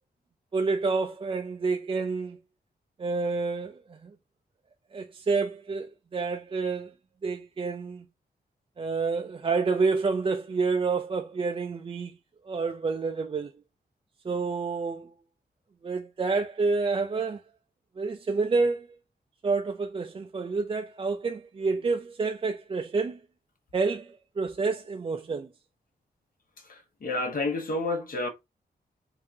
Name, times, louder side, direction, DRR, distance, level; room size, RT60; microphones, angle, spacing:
voice 1, 0.5-2.4 3.0-4.1 4.9-6.9 7.2-8.1 8.8-12.2 12.4-13.5 14.2-15.1 15.8-17.4 18.0-18.9 19.4-23.2 23.7-25.5, right 4 dB, 30° right, 0.4 m, -28 dB
voice 2, 26.6-28.3, left 2 dB, 55° left, 1.0 m, -30 dB
3.7 x 3.6 x 2.8 m
wide cardioid pair, 170°, 17 cm